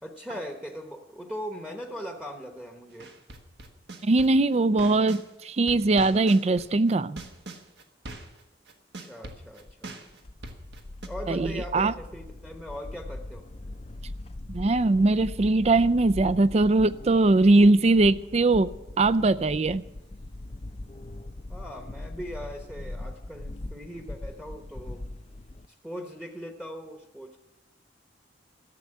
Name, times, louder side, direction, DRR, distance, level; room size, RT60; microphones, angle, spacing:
voice 1, 0.0-3.1 9.0-9.9 11.1-13.4 21.5-25.0 25.7-27.4, equal, 5° right, 3 dB, 1.0 m, -40 dB
sound 1, 3.0-5.3 5.7-11.1, right 2 dB, 65° right, 1.4 m, -42 dB
voice 2, 4.0-7.2 11.3-11.9 14.5-18.7 19.0-19.8, right 2 dB, 35° right, 16 dB, 0.4 m, -21 dB
sound 2, 9.7-25.7, left 2 dB, 35° left, 0.5 m, -40 dB
13.5 x 7.3 x 9.9 m, 0.99 s
head